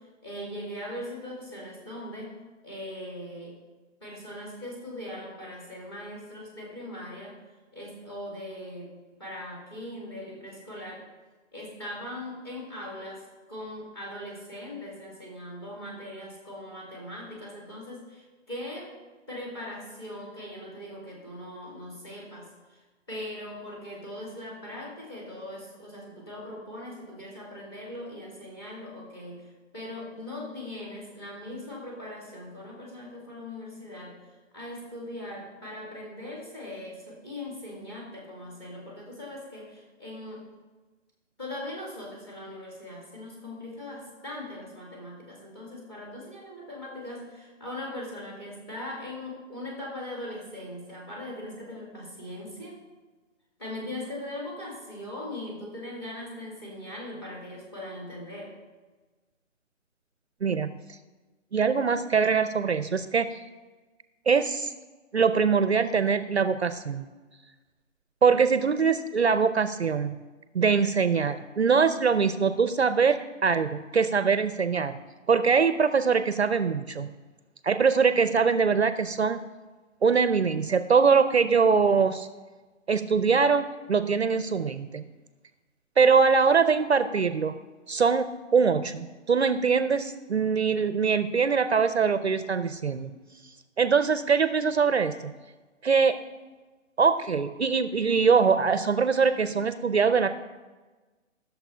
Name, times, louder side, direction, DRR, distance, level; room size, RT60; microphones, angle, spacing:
voice 1, 0.0-2.4 2.6-3.6 4.0-7.4 7.7-11.1 11.5-18.9 19.3-22.8 23.1-34.2 34.5-40.4 41.4-52.8 53.6-58.6, left 1 dB, 20° left, -3 dB, 2.5 m, -40 dB
voice 2, 60.4-60.7 61.5-63.4 64.3-64.7 65.1-67.1 68.2-70.2 70.5-75.0 75.3-77.1 77.6-79.4 80.0-82.3 82.9-85.0 86.0-87.6 87.9-93.1 93.8-95.3 95.8-96.2 97.0-100.3, right 5 dB, 55° right, 11 dB, 0.6 m, -23 dB
11.5 x 6.9 x 5.6 m, 1.3 s
hypercardioid pair, 180°, 39 cm